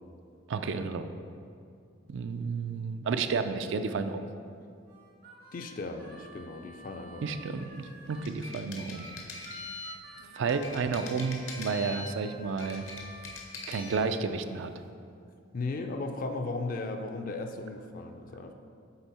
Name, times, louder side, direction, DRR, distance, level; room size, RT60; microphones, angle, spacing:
voice 1, 0.5-1.1 2.1-4.3 7.2-9.1 9.4-9.5 10.3-12.8 13.7-14.7, right 5 dB, 65° right, 9 dB, 0.4 m, -31 dB
Harmonica, 4.9-8.4 8.9-14.0, right 1 dB, 50° right, 0.8 m, -51 dB
voice 2, 5.5-7.4 15.5-18.5, left 3 dB, 45° left, 5 dB, 0.4 m, -36 dB
sound 1, 8.1-10.0 10.5-12.2 12.5-14.0, left 4 dB, 75° left, 0.9 m, -42 dB
8.0 x 3.7 x 4.2 m, 2.4 s
head